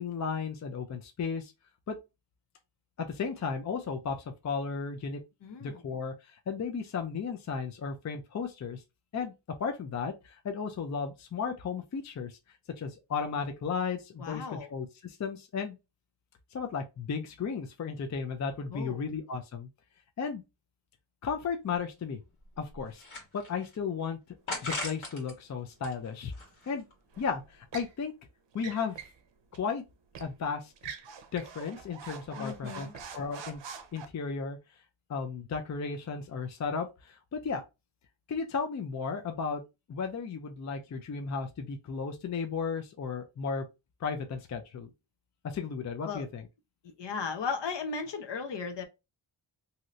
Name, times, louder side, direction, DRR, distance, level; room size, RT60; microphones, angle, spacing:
voice 1, 0.0-1.5 1.9-2.0 3.0-5.2 5.6-8.8 9.1-9.3 9.6-12.4 12.8-15.8 16.5-19.7 20.2-20.4 21.2-22.2 22.6-24.2 24.5-26.3 26.7-26.9 27.2-28.1 28.5-29.0 29.5-29.8 30.2-30.7 31.3-32.9 33.1-33.6 33.9-34.6 35.1-37.6 38.3-39.6 39.9-43.6 44.0-44.9 45.4-46.4, left 5 dB, 40° left, 0.4 m, -34 dB
voice 2, 5.4-5.8 14.2-14.7 18.7-19.1 32.4-32.9 46.0-46.2 47.0-48.8, left 5 dB, 65° left, 0.8 m, -36 dB
sound 1, 21.8-21.9 22.4-23.8 24.5-25.3 25.7-26.9, left 2 dB, 85° left, 1.5 m, -39 dB
sound 2, 24.7-24.9 27.1-27.9 28.5-29.2 29.5-29.7 30.1-30.3 30.8-34.0, right 6 dB, 65° right, 0.6 m, -45 dB
2.8 x 2.6 x 3.0 m
wide cardioid pair, 125°, 47 cm